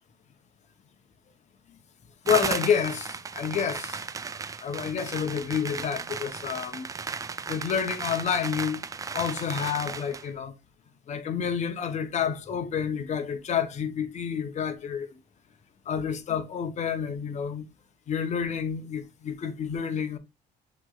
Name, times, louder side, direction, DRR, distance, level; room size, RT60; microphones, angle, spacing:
voice 1, 2.2-4.0 4.6-6.9 7.5-8.8 9.1-10.5 11.1-15.1 15.9-17.7 18.1-20.2, left 7 dB, 45° left, 0.9 m, -29 dB
sound 1, 2.3-10.3, right 5 dB, 20° right, 0.3 m, -35 dB
6.1 x 3.1 x 2.4 m
cardioid pair, 110°, 17 cm